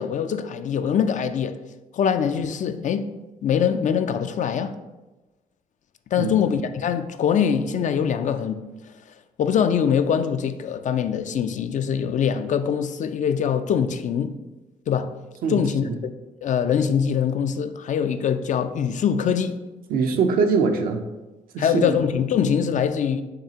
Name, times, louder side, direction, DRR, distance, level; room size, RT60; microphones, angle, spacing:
voice 1, 0.0-1.6 1.9-3.1 3.4-4.7 6.1-8.6 9.4-14.4 14.9-15.1 15.5-16.1 16.4-19.6 21.6-23.2, left 7 dB, 55° left, 0.4 m, -23 dB
voice 2, 15.4-16.0 19.9-21.0 21.5-22.0, right 5 dB, 80° right, 0.5 m, -23 dB
5.8 x 3.2 x 2.8 m
cardioid pair, 65°, 15 cm